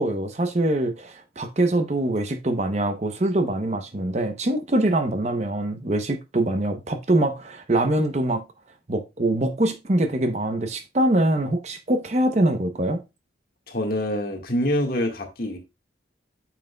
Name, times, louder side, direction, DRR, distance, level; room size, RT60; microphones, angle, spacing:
voice 1, 0.0-8.4 8.9-13.0, right 1 dB, 35° right, 0.8 m, -23 dB
voice 2, 13.7-15.6, left 1 dB, 50° left, 1.6 m, -25 dB
8.9 x 6.0 x 2.2 m
head